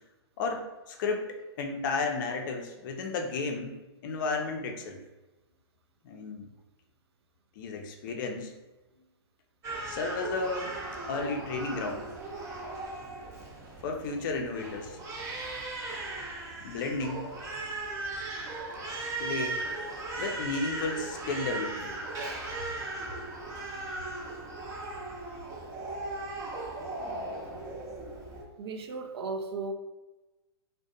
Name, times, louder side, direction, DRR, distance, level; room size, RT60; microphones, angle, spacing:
voice 1, 0.4-5.0 6.0-6.5 7.6-8.5 9.9-10.8 11.1-12.0 13.8-15.0 16.6-17.3 19.2-19.6 20.2-22.0, left 3 dB, 50° left, 3 dB, 0.4 m, -33 dB
Crying sobbing, 9.6-28.4, right 2 dB, 25° right, 0.6 m, -38 dB
voice 2, 28.6-29.7, right 3 dB, 70° right, 5 dB, 0.4 m, -35 dB
2.4 x 2.1 x 2.6 m, 1.1 s
hypercardioid pair, 125°, 14 cm